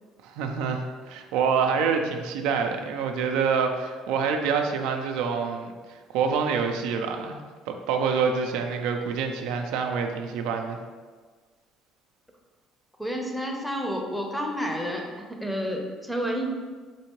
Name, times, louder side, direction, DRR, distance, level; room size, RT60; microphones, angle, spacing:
voice 1, 0.2-7.4 7.7-10.8, right 6 dB, 80° right, 4 dB, 0.4 m, -26 dB
voice 2, 13.0-16.5, equal, 5° left, 1 dB, 0.7 m, -30 dB
4.4 x 2.7 x 3.0 m, 1.5 s
supercardioid pair, 75°, 0 cm